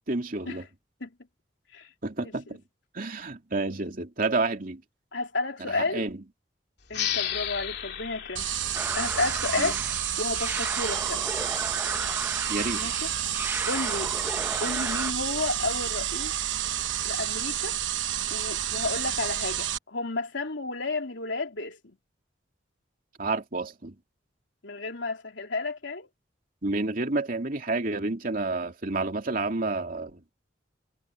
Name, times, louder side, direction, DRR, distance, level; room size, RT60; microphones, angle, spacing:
voice 1, 0.1-0.6 2.0-2.6 2.9-4.8 5.7-6.2 9.6-9.8 12.5-12.8 23.2-23.9 26.6-30.3, right 3 dB, 50° right, 2.8 m, -30 dB
voice 2, 5.1-6.0 6.9-8.5 8.9-9.8 10.2-11.2 12.7-13.0 13.2-14.1 14.6-16.3 17.0-17.8 18.3-22.0 24.6-26.1, left 3 dB, 85° left, 3.1 m, -32 dB
sound 1, 6.9-10.2, left 10 dB, 65° left, 2.7 m, -34 dB
sound 2, 8.4-19.8, right 11 dB, 80° right, 0.9 m, -30 dB
sound 3, 8.7-15.1, right 2 dB, 10° right, 0.7 m, -34 dB
head